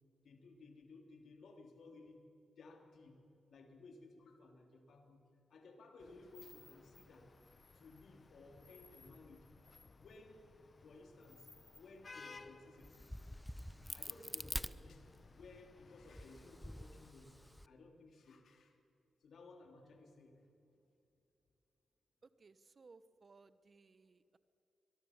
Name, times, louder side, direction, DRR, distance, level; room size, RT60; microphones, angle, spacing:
voice 1, 0.2-2.2 2.6-3.1 3.5-5.2 5.5-7.2 7.7-9.4 9.7-10.4 10.8-11.5 11.8-13.1 13.9-18.7 19.2-20.4, left 3 dB, 70° left, 4 dB, 3.4 m, -58 dB
Vehicle horn car horn honking / Traffic noise roadway noise, 6.0-17.1, left 4 dB, 45° left, 1.2 m, -60 dB
Crack, 12.8-15.5 16.0-17.7, equal, 5° left, 0.8 m, -46 dB
voice 2, 22.2-24.4, right 4 dB, 50° right, 15 dB, 1.1 m, -63 dB
23.0 x 22.5 x 7.3 m, 2.7 s
supercardioid pair, 50°, 0 cm